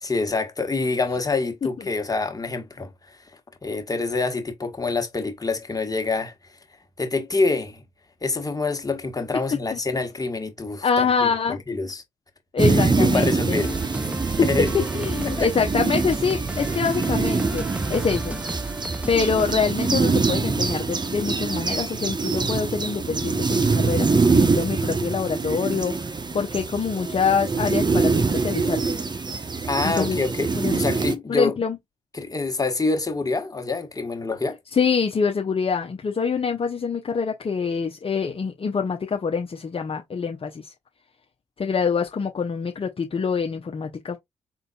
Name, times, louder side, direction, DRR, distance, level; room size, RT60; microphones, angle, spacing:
voice 1, 0.0-6.6 7.0-7.8 8.2-12.0 12.7-13.8 14.4-14.7 15.2-15.5 29.7-31.5 32.1-34.6, left 3 dB, 25° left, 1.4 m, -26 dB
voice 2, 10.8-11.6 12.5-13.7 14.9-18.4 19.1-28.8 29.8-30.2 30.5-30.8 31.3-31.8 34.7-40.7 41.6-44.2, left 5 dB, 40° left, 0.8 m, -25 dB
sound 1, 12.6-31.2, right 4 dB, 30° right, 0.9 m, -24 dB
sound 2, 13.6-19.9, right 2 dB, 10° right, 0.3 m, -34 dB
3.8 x 3.7 x 2.3 m
hypercardioid pair, 45°, 14 cm